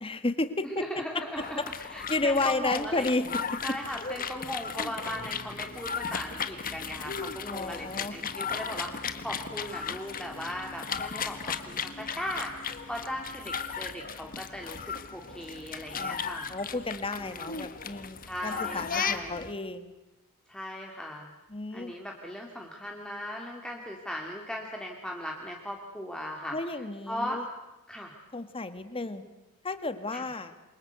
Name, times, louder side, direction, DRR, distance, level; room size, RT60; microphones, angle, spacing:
voice 1, 0.0-1.2 1.6-1.7 2.1-3.6 7.4-8.1 16.0-19.9 21.5-21.9 26.5-27.4 28.3-29.2 29.6-30.5, left 2 dB, 25° left, 11 dB, 1.7 m, -32 dB
voice 2, 0.8-3.1 3.6-16.5 17.2-17.5 18.2-19.4 20.5-21.3 21.7-26.6 27.1-27.4 27.9-28.1 30.1-30.3, equal, 5° left, 0 dB, 2.2 m, -38 dB
sound 1, 1.4-19.5, left 6 dB, 40° left, 1.5 m, -36 dB
27.5 x 24.0 x 8.1 m, 1.0 s
head